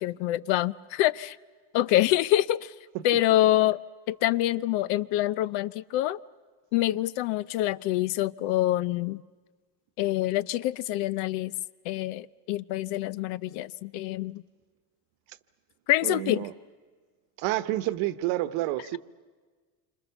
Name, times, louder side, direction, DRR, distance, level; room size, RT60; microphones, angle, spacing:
voice 1, 0.0-1.4 1.7-2.7 3.0-3.8 4.1-6.2 6.7-9.2 10.0-11.5 11.9-14.4 15.9-16.4, left 14 dB, 70° left, 18 dB, 0.8 m, -26 dB
voice 2, 16.0-16.5 17.4-19.0, right 16 dB, 70° right, 14 dB, 1.2 m, -29 dB
28.0 x 26.0 x 7.0 m, 1.4 s
cardioid pair, 165°, 48 cm